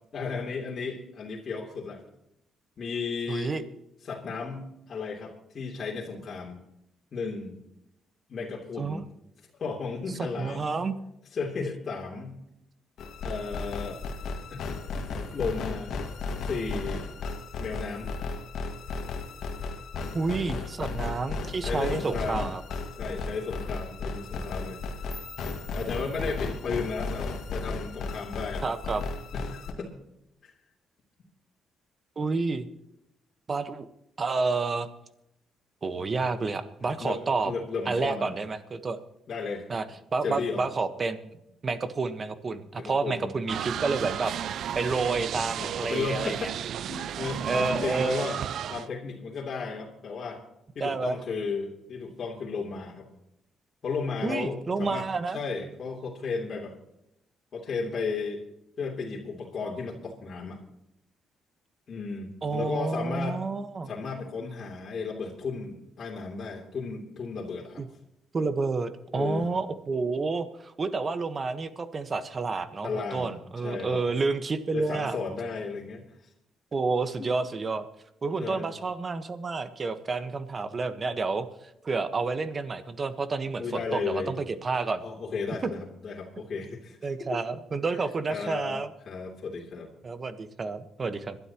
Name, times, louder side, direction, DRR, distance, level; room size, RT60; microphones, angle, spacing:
voice 1, 0.1-2.0 2.8-3.6 4.0-6.6 7.1-7.6 8.3-9.1 9.6-10.8 11.3-12.4 13.2-14.0 14.5-14.6 15.3-15.9 16.4-17.1 17.6-18.2 21.7-22.4 23.0-24.8 25.7-28.7 29.3-29.9 30.4-30.5 37.0-37.2 37.4-38.3 39.3-39.6 40.2-40.6 42.8-43.3 45.6-46.5 46.9-48.4 48.7-50.4 50.7-53.1 53.8-55.1 55.3-56.7 57.5-58.4 58.8-60.6 61.9-63.4 63.8-67.8 69.1-69.5 72.8-73.3 73.6-74.0 74.7-76.0 77.2-77.3 78.4-78.7 83.6-84.3 85.0-87.1 88.3-88.8 89.0-89.9, left 4 dB, 50° left, -4 dB, 3.3 m, -34 dB
voice 2, 3.3-3.6 8.8-9.0 10.4-10.9 20.1-22.6 28.6-29.0 32.2-32.7 33.5-33.9 34.2-34.9 35.8-37.5 37.8-39.0 39.7-39.8 40.1-41.2 41.6-44.3 44.7-46.5 47.4-48.2 50.8-51.2 54.2-55.4 62.4-63.9 67.8-67.9 68.3-75.2 76.7-77.9 78.2-81.5 81.8-85.0 87.0-88.9 90.0-91.4, right 4 dB, 35° right, 10 dB, 1.3 m, -29 dB
sound 1, 13.0-29.7, left 3 dB, 70° left, 2.0 m, -35 dB
sound 2, 25.1-28.0, left 3 dB, 15° left, 5.9 m, -51 dB
sound 3, 43.5-48.9, right 9 dB, 70° right, 0.4 m, -33 dB
26.0 x 12.0 x 3.0 m, 0.83 s
cardioid pair, 90°, 0 cm